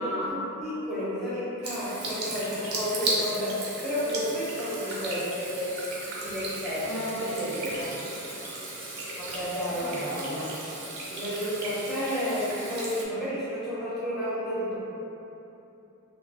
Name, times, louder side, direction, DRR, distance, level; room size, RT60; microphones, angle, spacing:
voice 1, 0.0-5.8 6.2-6.9 7.7-7.9 9.2-9.9 11.1-14.8, equal, ahead, -12 dB, 0.6 m, -31 dB
Water tap faucet / Sink (filling or washing), 1.6-13.1, right 2 dB, 50° right, 0.5 m, -36 dB
voice 2, 6.8-7.9 9.7-10.6 12.3-12.4, equal, 75° left, -8 dB, 0.7 m, -33 dB
2.1 x 2.1 x 3.3 m, 3.0 s
head